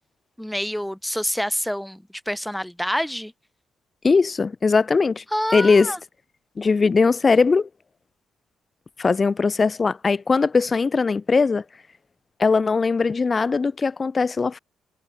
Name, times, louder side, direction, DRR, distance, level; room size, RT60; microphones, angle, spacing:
voice 1, 0.4-3.3 5.3-6.0, equal, ahead, 1.4 m, -27 dB
voice 2, 4.0-5.2 5.5-5.9 6.6-7.7 9.0-11.6 12.4-14.6, left 4 dB, 30° left, 0.5 m, -20 dB
cardioid pair, 90°, 0 cm